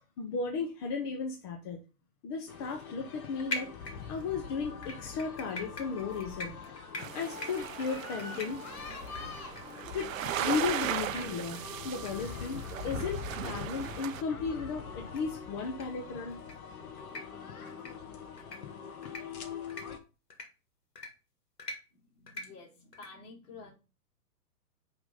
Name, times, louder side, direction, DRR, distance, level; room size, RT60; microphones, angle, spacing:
voice 1, 0.2-1.8 2.2-3.7 4.1-6.5 7.1-8.6 9.9-10.1 10.4-11.6 11.8-16.4, left 5 dB, 20° left, 3 dB, 0.5 m, -35 dB
sound 1, 2.5-20.0, left 6 dB, 65° left, 1.3 m, -43 dB
sound 2, 3.5-4.3 4.8-10.9 11.1-11.2 11.5-11.7 12.1-12.2 12.4-12.5 13.0-13.1 13.4-13.5 14.0-14.1 15.1-15.2 15.6-15.8 16.3-16.5 17.0-17.2 17.7-17.9 18.4-18.6 19.0-19.2 19.7-19.8 20.3-20.4 21.0-21.1 21.6-21.8 22.3-22.4 22.9-23.1, left 2 dB, 85° left, 1.9 m, -41 dB
sound 3, 7.0-14.2, right 11 dB, 55° right, 0.6 m, -38 dB
voice 2, 22.0-23.7, left 4 dB, 45° left, 0 dB, 3.0 m, -50 dB
5.7 x 3.6 x 5.3 m, 0.31 s
hypercardioid pair, 120°, 47 cm